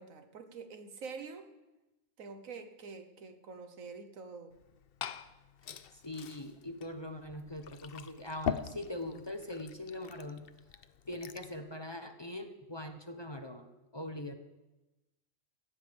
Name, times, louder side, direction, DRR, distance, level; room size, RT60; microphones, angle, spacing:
voice 1, 0.0-1.4 2.2-4.5, right 4 dB, 85° right, 8 dB, 1.6 m, -46 dB
Liquid, 4.5-11.6, left 8 dB, 55° left, 0.7 m, -43 dB
voice 2, 6.0-10.5 11.1-13.7 13.9-14.3, left 1 dB, 25° left, 6 dB, 0.8 m, -42 dB
17.0 x 17.0 x 3.5 m, 1.0 s
omnidirectional pair, 1.4 m